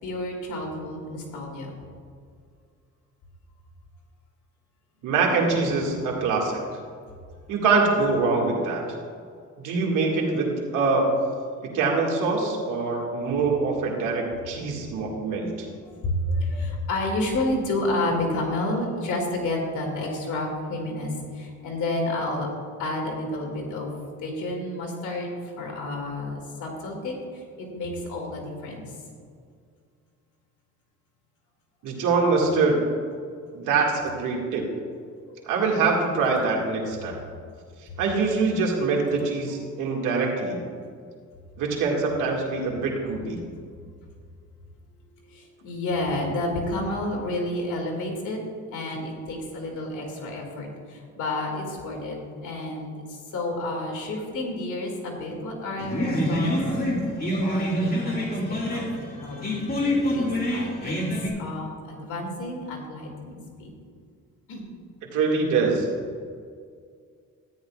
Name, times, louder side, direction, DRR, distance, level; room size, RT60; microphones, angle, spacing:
voice 1, 0.0-1.7 11.5-11.6 14.7-14.8 15.8-22.5 22.8-23.9 24.2-28.9 35.3-35.5 37.9-38.3 45.3-48.4 48.7-56.5 57.4-58.9 59.2-60.9 61.4-63.7 64.5-64.7, left 1 dB, 80° left, 0 dB, 2.3 m, -30 dB
voice 2, 5.0-6.6 7.5-8.8 9.6-11.1 11.7-15.7 31.8-32.8 33.5-34.6 35.5-37.2 38.0-40.6 41.6-43.4 65.1-65.9, right 4 dB, 85° right, -1 dB, 2.0 m, -24 dB
sound 1, 55.8-61.3, equal, 30° left, 2.3 m, -26 dB
13.0 x 10.0 x 2.4 m, 2.1 s
cardioid pair, 90°, 30 cm